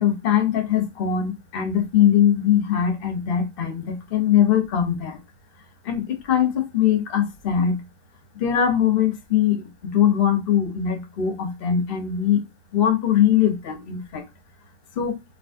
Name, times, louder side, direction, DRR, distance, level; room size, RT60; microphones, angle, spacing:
voice 1, 0.0-5.2 5.9-7.8 8.4-12.4 12.7-14.2 15.0-15.1, left 9 dB, 40° left, 0.9 m, -21 dB
3.9 x 3.4 x 2.5 m
omnidirectional pair, 1.9 m